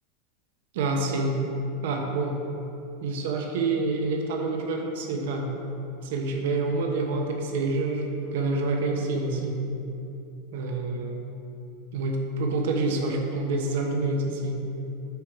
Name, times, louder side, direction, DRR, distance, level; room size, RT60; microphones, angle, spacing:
voice 1, 0.7-1.4 1.8-2.4 3.0-5.5 6.0-9.6 10.5-11.3 11.9-14.6, right 3 dB, 75° right, 2 dB, 0.9 m, -27 dB
8.0 x 3.2 x 4.8 m, 2.8 s
supercardioid pair, 120°, 0 cm